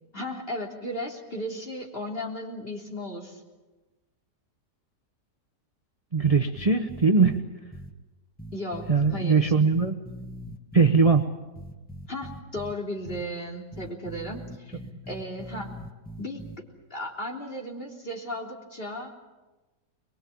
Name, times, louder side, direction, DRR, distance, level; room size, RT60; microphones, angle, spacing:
voice 1, 0.1-3.4 8.5-9.5 12.1-14.8 15.1-15.7 16.2-16.4 16.9-19.1, left 1 dB, 35° left, 0 dB, 3.7 m, -35 dB
voice 2, 6.1-7.4 8.9-10.0 10.7-11.2, right 4 dB, 25° right, 5 dB, 0.9 m, -20 dB
sound 1, 6.2-7.4 7.7-7.9 8.4-11.2 11.6-12.7 13.1-13.2 13.7-16.6, right 1 dB, 5° left, 1.0 m, -41 dB
23.5 x 22.0 x 8.6 m, 1.1 s
omnidirectional pair, 1.8 m